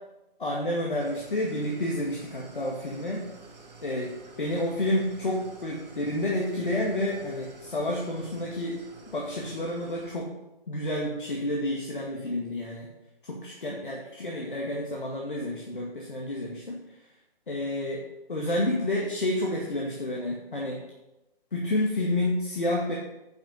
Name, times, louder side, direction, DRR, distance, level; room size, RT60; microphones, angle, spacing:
voice 1, 0.4-3.2 3.8-4.1 4.4-8.8 9.1-10.3 10.7-12.9 13.2-16.8 17.5-18.0 18.3-20.8 21.5-23.0, left 1 dB, 60° left, -1 dB, 2.1 m, -29 dB
Idling, 1.0-10.1, right 3 dB, 45° right, 2.5 m, -50 dB
10.0 x 7.1 x 5.4 m, 0.94 s
figure-of-eight pair, 140°, 29 cm